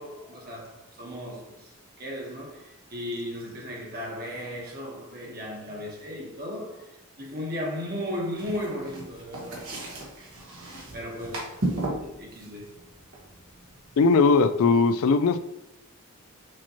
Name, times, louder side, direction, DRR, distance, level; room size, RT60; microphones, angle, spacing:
voice 1, 0.0-1.7 2.0-6.9 7.2-9.7 10.2-10.3 10.9-12.7, left 1 dB, 45° right, 1.2 m, -36 dB
sound 1, 8.3-14.5, right 2 dB, 75° right, 1.3 m, -36 dB
voice 2, 14.0-15.4, left 4 dB, 75° left, 0.4 m, -19 dB
6.2 x 2.9 x 2.9 m
head